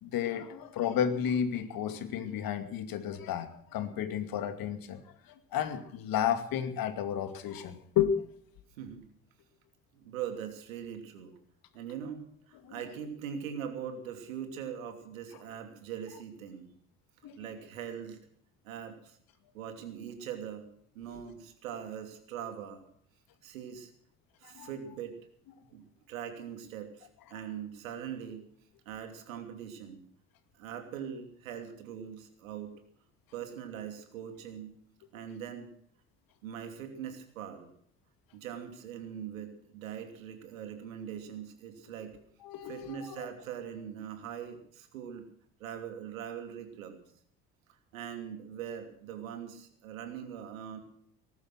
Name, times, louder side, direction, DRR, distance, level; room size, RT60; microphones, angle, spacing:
voice 1, 0.0-8.2 12.6-12.8 17.2-17.4 24.4-24.7 42.4-43.3, left 9 dB, 60° left, 9 dB, 2.4 m, -32 dB
voice 2, 8.8-9.1 9.9-11.3 11.7-16.7 17.4-18.2 18.6-19.2 19.5-20.7 20.9-22.8 23.4-23.9 24.4-25.2 25.7-28.5 28.8-30.0 30.6-32.8 33.3-34.7 35.1-35.7 36.4-37.7 38.3-42.2 42.6-45.3 45.6-47.0 47.9-50.8, right 8 dB, 80° right, 6 dB, 2.9 m, -41 dB
20.0 x 12.0 x 6.1 m, 0.63 s
hypercardioid pair, 55°, 40 cm